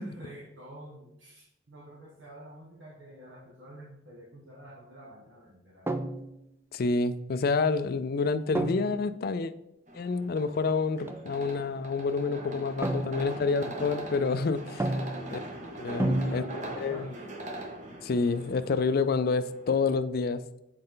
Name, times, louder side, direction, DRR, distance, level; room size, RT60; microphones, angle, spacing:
voice 1, 0.0-5.9 12.8-13.6 15.0-15.3 16.0-17.4, right 1 dB, 80° right, -3 dB, 1.3 m, -48 dB
sound 1, 5.9-6.5 8.6-9.2 11.1-11.3 12.8-13.6 14.8-15.5 16.0-16.9, right 1 dB, 10° right, 0.4 m, -31 dB
voice 2, 6.7-9.5 9.9-14.9 15.3-15.4 15.8-16.4 16.8-17.1 18.0-20.4, left 4 dB, 50° left, 13 dB, 0.4 m, -28 dB
sound 2, 9.9-20.0, right 1 dB, 40° right, 1.0 m, -42 dB
7.7 x 4.3 x 3.8 m, 0.86 s
head